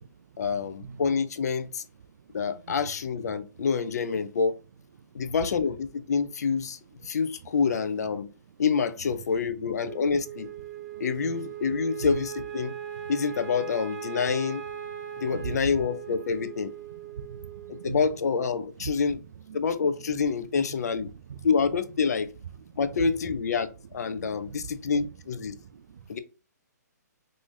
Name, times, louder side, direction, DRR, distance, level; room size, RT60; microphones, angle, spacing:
voice 1, 0.4-1.8 2.3-4.6 5.1-6.8 7.0-8.3 8.6-10.5 11.0-12.7 13.1-14.6 15.2-16.7 17.7-19.2 19.5-21.1 21.4-22.3 22.8-25.6 26.1-26.2, left 5 dB, 60° left, 0.5 m, -27 dB
Wind instrument woodwind instrument, 9.8-18.3, right 9 dB, 25° right, 0.7 m, -39 dB
voice 2, 17.1-18.0 21.3-21.4 24.2-24.7 25.6-26.2, right 6 dB, 70° right, 0.4 m, -41 dB
3.1 x 2.6 x 3.7 m
hypercardioid pair, 165°, 10 cm